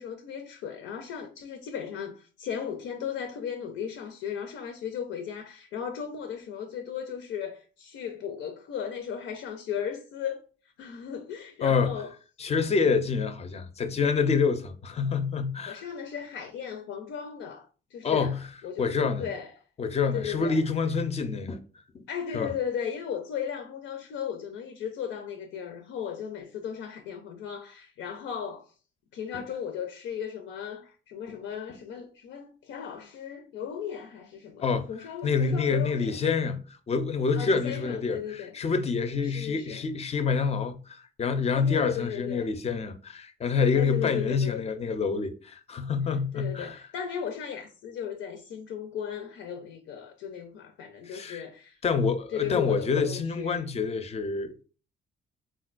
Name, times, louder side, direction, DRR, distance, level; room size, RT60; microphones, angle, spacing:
voice 1, 0.0-10.4 10.8-12.1 15.7-18.4 18.6-19.5 20.1-20.6 22.1-28.7 29.1-36.2 37.3-38.5 39.2-39.8 41.5-42.5 43.7-44.7 46.3-51.8 52.3-53.7, left 8 dB, 85° left, 0.5 m, -36 dB
voice 2, 11.6-12.0 12.4-15.8 18.0-18.4 18.8-19.2 19.8-21.6 21.9-22.0 22.3-22.5 34.6-34.9 35.2-36.6 36.9-46.8 51.1-51.4 51.8-54.5, left 5 dB, 30° left, 0.4 m, -27 dB
3.8 x 2.2 x 2.4 m
cardioid pair, 90°, 20 cm